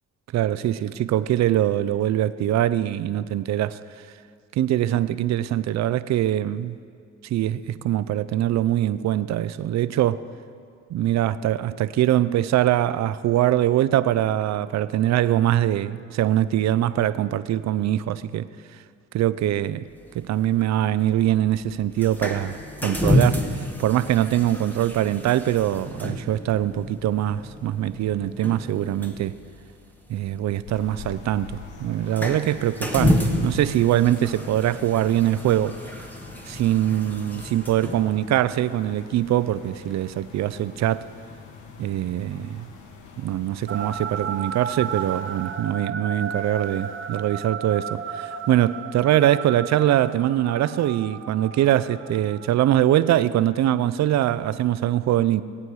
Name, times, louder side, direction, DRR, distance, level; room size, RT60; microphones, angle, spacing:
voice 1, 0.3-3.8 4.6-6.8 7.2-10.2 10.9-18.5 19.1-19.8 20.1-22.6 22.8-23.5 23.8-29.4 30.1-35.8 36.5-41.1 41.8-42.7 43.2-55.4, right 12 dB, 65° right, 0.5 m, -23 dB
Gas owen lighting, 19.9-38.2, left 1 dB, 5° left, 1.4 m, -30 dB
sound 1, 30.7-45.2, left 5 dB, 80° left, 1.3 m, -44 dB
sound 2, 43.7-53.1, right 7 dB, 40° right, 0.8 m, -34 dB
19.5 x 8.3 x 4.8 m
cardioid pair, 90°, 30 cm